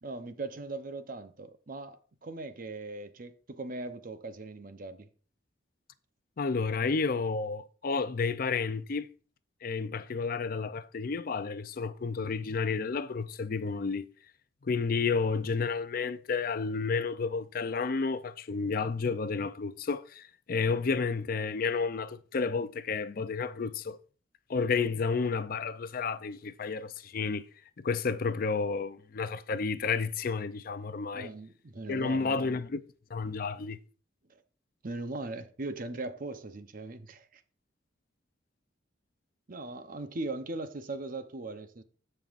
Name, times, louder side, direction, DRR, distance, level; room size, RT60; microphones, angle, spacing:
voice 1, 0.0-5.1 31.1-32.6 34.3-34.4 34.8-37.4 39.5-41.8, right 2 dB, 50° right, 0.8 m, -39 dB
voice 2, 6.4-9.1 9.6-14.1 14.6-24.0 24.5-27.4 27.8-31.3 31.9-32.8 33.1-33.8, left 4 dB, 50° left, 0.5 m, -31 dB
15.0 x 5.5 x 2.5 m
head